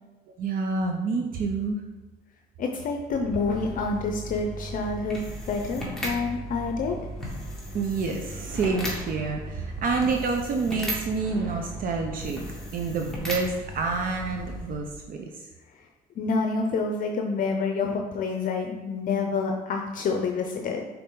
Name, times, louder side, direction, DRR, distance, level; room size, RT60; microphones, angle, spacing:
voice 1, 0.4-1.8 7.7-12.4 12.7-15.5, right 4 dB, 55° right, 3 dB, 0.7 m, -28 dB
voice 2, 2.6-5.2 5.5-7.0 16.2-20.8, left 4 dB, 55° left, 2 dB, 0.7 m, -28 dB
sound 1, 3.0-15.0, equal, 5° left, 1.8 m, -36 dB
6.6 x 4.1 x 3.8 m, 1.2 s
cardioid pair, 110°, 17 cm